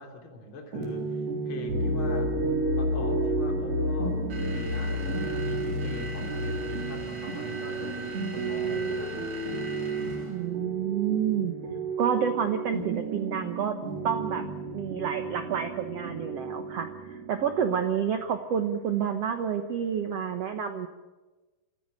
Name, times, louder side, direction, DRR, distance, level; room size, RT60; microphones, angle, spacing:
voice 1, 0.0-2.4 2.8-9.3, left 3 dB, 35° left, 2 dB, 3.8 m, -43 dB
sound 1, 0.7-20.3, right 4 dB, 85° right, 5.6 m, -34 dB
sound 2, 1.7-7.0, left 1 dB, 55° right, 5.9 m, -29 dB
sound 3, 4.3-10.5, right 3 dB, 40° right, 3.5 m, -41 dB
voice 2, 10.3-11.5 12.0-13.8 14.0-14.4 14.7-16.9 17.3-20.9, right 8 dB, 70° right, 7 dB, 1.5 m, -29 dB
26.0 x 15.0 x 8.5 m, 1.2 s
omnidirectional pair, 4.4 m